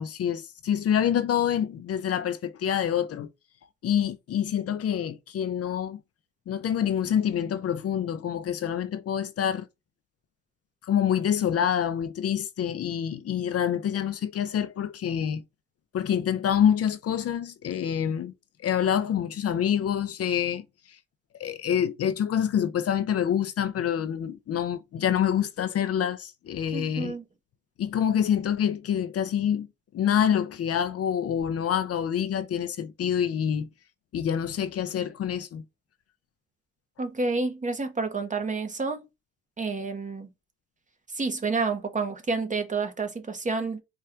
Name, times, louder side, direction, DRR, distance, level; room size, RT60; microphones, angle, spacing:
voice 1, 0.0-3.3 3.8-6.0 6.5-9.7 10.8-15.4 15.9-18.3 18.6-21.0 21.4-27.2 27.8-29.7 29.9-33.7 34.1-35.6, left 9 dB, 50° left, 0.5 m, -26 dB
voice 2, 26.7-27.2 37.0-39.1 39.6-40.3 41.1-43.8, right 4 dB, 25° right, 1.0 m, -29 dB
4.4 x 2.4 x 4.4 m
cardioid pair, 90°, 30 cm